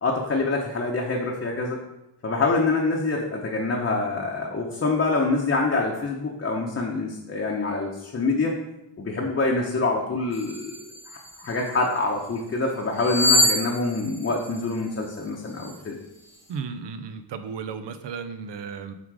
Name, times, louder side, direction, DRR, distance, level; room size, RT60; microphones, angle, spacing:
voice 1, 0.0-1.8 2.2-8.6 9.0-10.7 11.1-16.0, left 3 dB, 30° left, -1 dB, 0.7 m, -26 dB
sound 1, 10.3-11.9 12.9-15.1 15.6-15.8, left 1 dB, 5° right, 1.4 m, -25 dB
voice 2, 16.5-18.9, right 6 dB, 85° right, 10 dB, 0.7 m, -34 dB
7.4 x 3.7 x 4.8 m, 0.90 s
wide cardioid pair, 155°, 41 cm